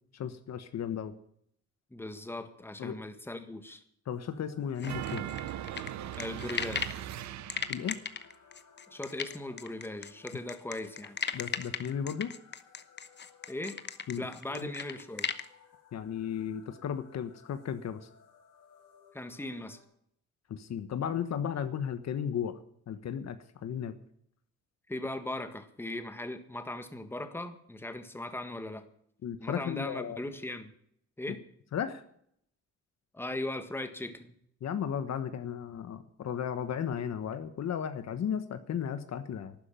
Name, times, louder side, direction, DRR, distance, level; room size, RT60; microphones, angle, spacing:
voice 1, 0.1-1.1 2.8-3.0 4.1-5.2 7.7-8.0 11.3-12.3 14.1-14.7 15.9-18.1 20.5-22.6 22.9-23.9 29.2-30.2 31.3-31.4 31.7-32.0 34.6-39.6, left 8 dB, 60° left, 10 dB, 1.3 m, -35 dB
voice 2, 1.9-3.8 6.2-6.9 8.9-11.2 13.5-13.8 14.2-15.3 19.1-19.8 24.9-28.9 29.4-30.7 31.2-31.4 33.1-34.3, left 1 dB, 5° left, 8 dB, 1.6 m, -38 dB
sound 1, 4.1-19.8, left 6 dB, 80° left, 5.2 m, -60 dB
sound 2, 4.8-7.0 7.5-15.5, left 6 dB, 35° left, 1.0 m, -36 dB
sound 3, 4.8-8.0, right 12 dB, 65° right, 0.7 m, -39 dB
12.5 x 9.7 x 9.0 m, 0.68 s
cardioid pair, 90°, 30 cm